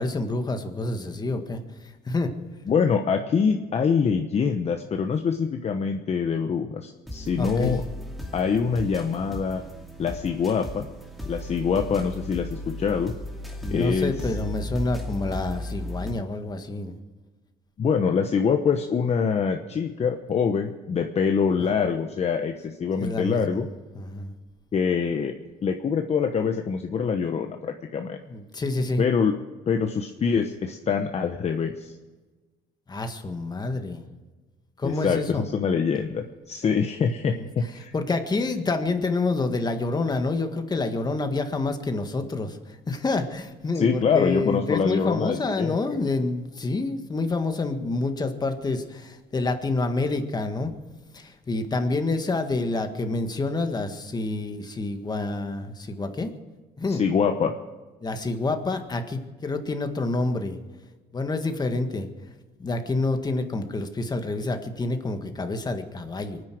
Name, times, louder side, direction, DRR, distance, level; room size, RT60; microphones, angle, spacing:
voice 1, 0.0-2.3 7.4-7.8 13.6-17.0 21.6-21.7 23.0-23.6 23.9-24.3 28.3-29.1 32.9-34.0 34.8-35.4 37.3-37.5 37.9-50.8 51.1-56.3 56.8-57.0 58.0-60.6 61.1-62.1 62.6-66.4, left 3 dB, 25° left, 6 dB, 1.7 m, -28 dB
voice 2, 2.7-7.8 8.3-9.6 10.0-10.9 11.3-13.1 13.7-14.1 17.8-23.7 24.7-25.3 25.6-28.2 29.0-29.3 29.7-31.9 34.8-37.9 43.7-45.7 56.9-57.6, left 6 dB, 40° left, 5 dB, 1.1 m, -24 dB
sound 1, 7.1-16.1, left 1 dB, ahead, 2.5 m, -36 dB
24.0 x 9.8 x 6.2 m, 1.3 s
cardioid pair, 110°, 17 cm